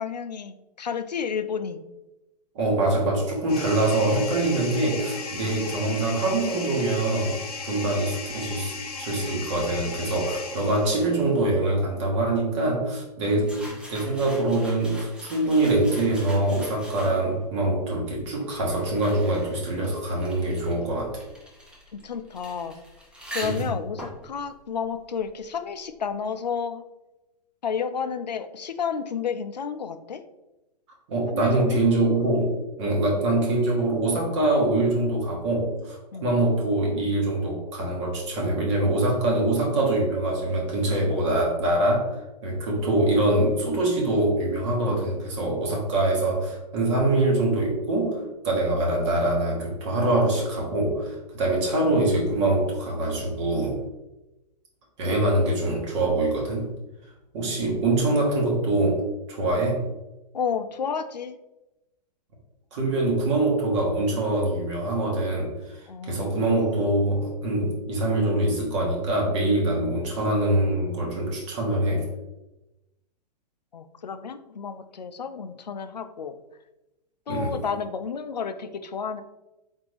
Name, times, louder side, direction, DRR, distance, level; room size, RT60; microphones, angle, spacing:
voice 1, 0.0-1.8 5.4-5.5 21.9-22.7 23.3-26.8 27.6-30.2 31.3-31.8 32.8-33.0 36.1-36.3 57.4-58.0 60.3-61.4 65.9-66.5 73.7-76.4 77.3-79.2, left 6 dB, 80° left, 10 dB, 0.4 m, -31 dB
voice 2, 2.5-7.4 7.6-21.2 23.4-23.7 31.1-53.8 55.0-56.7 57.3-59.8 62.7-65.8 66.1-72.1 77.3-77.5, right 2 dB, 45° right, -2 dB, 1.3 m, -24 dB
sound 1, 3.5-11.2, left 4 dB, 60° left, 0.9 m, -36 dB
sound 2, 13.4-17.4 18.2-25.6, equal, 5° right, 0.7 m, -43 dB
4.0 x 3.6 x 3.3 m, 0.98 s
figure-of-eight pair, 110°, 21 cm